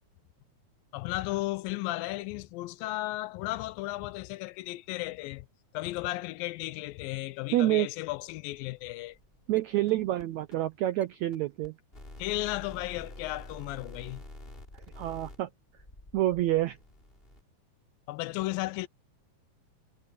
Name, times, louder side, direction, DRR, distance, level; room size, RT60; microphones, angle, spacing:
voice 1, 0.9-5.5 5.7-9.2 12.2-14.2 18.1-18.9, left 18 dB, 85° left, 2.3 m, -34 dB
voice 2, 7.5-7.9 9.5-11.7 14.7-15.5 16.1-16.8, right 15 dB, 85° right, 1.6 m, -28 dB
sound 1, 8.6-8.8 9.1-9.6 9.9-10.2 10.5-10.6 11.0-11.1 11.3-11.4 11.6-11.7 11.9-17.4, left 1 dB, 15° left, 3.8 m, -47 dB
omnidirectional pair, 4.1 m